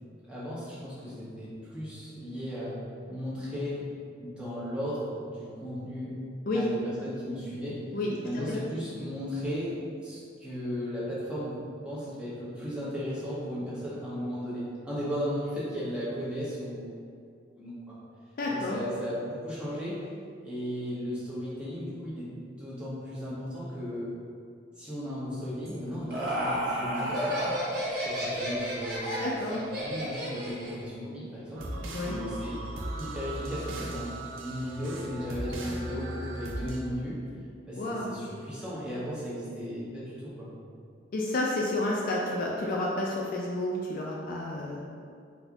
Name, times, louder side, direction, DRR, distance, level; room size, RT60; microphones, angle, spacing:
voice 1, 0.3-2.8 3.1-3.8 4.2-6.1 6.5-6.7 7.0-7.8 8.2-16.9 17.6-17.9 18.5-19.9 20.4-22.3 22.6-24.1 24.8-27.6 28.0-29.1 29.5-31.6 32.0-32.6 33.0-37.2 37.7-40.5, equal, 5° right, -10 dB, 0.7 m, -36 dB
voice 2, 18.4-18.8 29.2-29.6 31.9-32.2 37.8-38.1 41.1-44.8, left 1 dB, 45° left, -3 dB, 0.3 m, -30 dB
Laughter, 25.7-30.8, equal, 50° right, 0.8 m, -31 dB
sound 1, 31.5-36.8, right 1 dB, 80° right, 0.5 m, -37 dB
4.2 x 2.5 x 2.3 m, 2.3 s
head